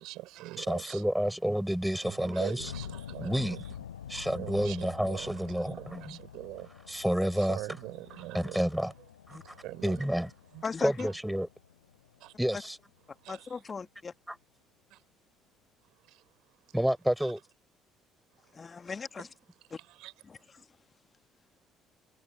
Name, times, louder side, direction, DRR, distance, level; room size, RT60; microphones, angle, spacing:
voice 1, 0.0-1.0 2.0-3.6 4.0-6.7 7.4-8.6 9.3-10.1 10.5-10.6 11.0-11.1 12.2-12.3 13.2-13.6 14.9-15.0 16.1-16.2 19.8-20.1, right 17 dB, 60° right, 6.7 m, -43 dB
voice 2, 0.6-2.7 3.2-3.6 4.1-6.0 6.9-7.6 8.3-8.9 9.8-10.3 10.8-11.5 12.4-12.8 14.3-14.4 16.7-17.4, equal, 5° right, 6.4 m, -29 dB
sound 1, 2.6-13.4, left 9 dB, 80° left, 3.9 m, -48 dB
voice 3, 10.6-11.1 12.5-12.6 13.3-14.1 18.5-19.3 19.7-19.8 20.3-20.7, left 5 dB, 30° left, 1.9 m, -38 dB
figure-of-eight pair, 50°, 0 cm